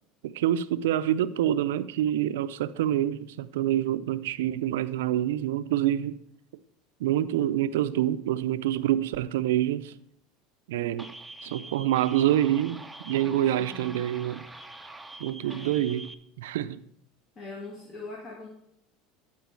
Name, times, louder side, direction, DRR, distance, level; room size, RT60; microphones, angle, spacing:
voice 1, 0.2-6.2 7.0-10.0 10.7-11.1 11.4-14.5 15.2-16.1 16.4-16.8, right 12 dB, 85° right, 0.4 m, -26 dB
sound 1, 11.0-16.1, right 2 dB, 5° right, 0.6 m, -45 dB
voice 2, 13.1-14.0 15.4-15.8 17.4-18.5, left 2 dB, 40° left, 1.9 m, -42 dB
11.5 x 4.5 x 4.6 m
supercardioid pair, 100°, 0 cm